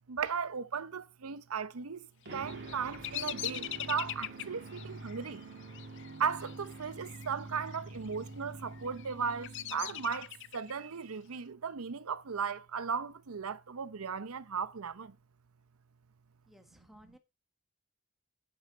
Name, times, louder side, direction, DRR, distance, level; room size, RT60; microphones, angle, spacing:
voice 1, 0.1-5.4 6.2-15.2, right 6 dB, 90° right, 0.7 m, -36 dB
Bird vocalization bird call bird song, 2.3-7.3 7.6-8.2 8.7-10.7, left 14 dB, 55° left, 0.5 m, -42 dB
sound 1, 2.3-10.5, right 2 dB, 55° right, 2.3 m, -47 dB
voice 2, 16.5-17.2, equal, ahead, 1.4 m, -58 dB
9.8 x 8.6 x 4.0 m
head